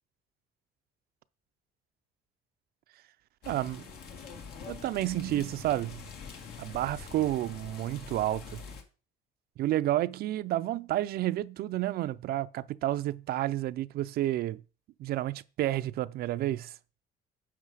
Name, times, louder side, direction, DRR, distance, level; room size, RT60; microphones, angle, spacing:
sound 1, 3.4-8.8, left 5 dB, 70° left, 1.7 m, -45 dB
voice 1, 3.5-3.9 4.7-6.0 6.6-8.6 9.6-14.6 15.0-16.7, right 14 dB, 65° right, 0.5 m, -30 dB
9.6 x 5.8 x 4.8 m
cardioid pair, 110°, 17 cm